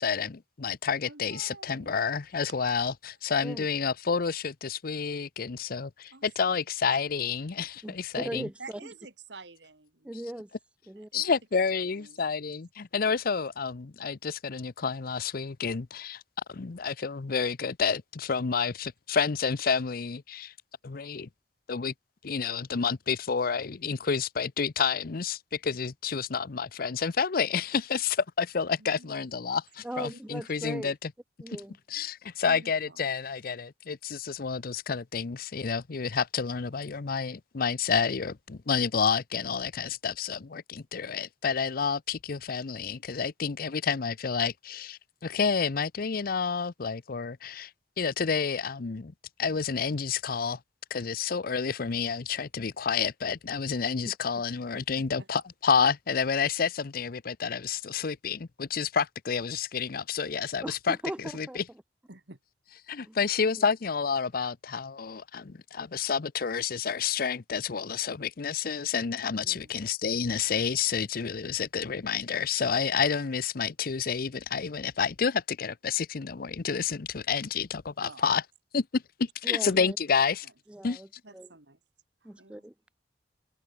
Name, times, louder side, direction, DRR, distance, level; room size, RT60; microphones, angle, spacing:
voice 1, 0.0-8.5 11.1-16.2 16.5-20.5 20.8-21.3 21.7-21.9 22.2-31.1 31.9-47.7 48.0-49.1 49.4-50.6 50.9-61.6 62.9-78.4 78.7-80.5 80.8-81.0, left 6 dB, 55° left, 0.6 m, -29 dB
voice 2, 1.0-2.0 6.1-6.6 8.6-10.1 11.0-11.3 11.7-12.3 28.8-29.4 29.9-30.2 30.6-30.7 32.4-33.0 55.0-55.3 62.1-62.4 69.6-69.8 78.0-78.4 80.4-80.5 81.2-81.8 82.2-82.6, right 3 dB, 80° right, 3.2 m, -49 dB
voice 3, 7.8-8.8 10.0-10.5 10.9-11.1 29.8-31.0 31.4-31.8 54.0-54.2 60.6-61.2 61.5-61.6 63.0-63.2 63.6-63.7 69.5-69.6 79.4-80.0 80.7-81.1 81.3-81.5 82.2-82.7, right 1 dB, 5° right, 0.3 m, -38 dB
head